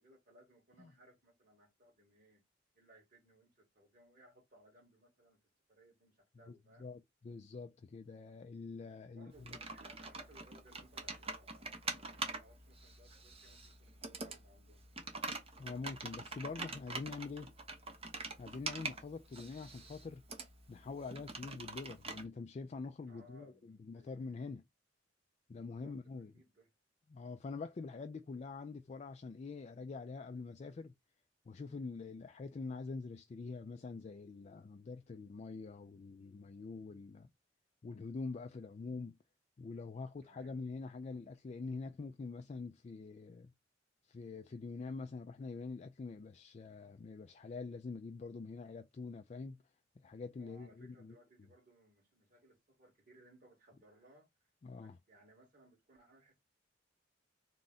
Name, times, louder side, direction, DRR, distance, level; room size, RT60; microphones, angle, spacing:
voice 1, 0.0-2.4 2.7-5.4 5.7-6.9 9.1-14.8 23.1-24.5 25.6-26.7 40.2-40.6 50.4-54.3 54.7-56.4, right 1 dB, 50° right, 2.3 m, -64 dB
voice 2, 6.5-9.6 15.6-17.5 18.4-20.2 20.7-24.6 25.5-26.3 27.1-30.9 31.5-37.3 37.8-39.2 39.6-43.5 44.0-49.6 50.0-51.2 54.6-55.0, left 4 dB, 35° left, 0.3 m, -45 dB
Computer keyboard, 9.3-22.2, right 3 dB, 35° right, 0.9 m, -45 dB
3.7 x 2.4 x 4.0 m
head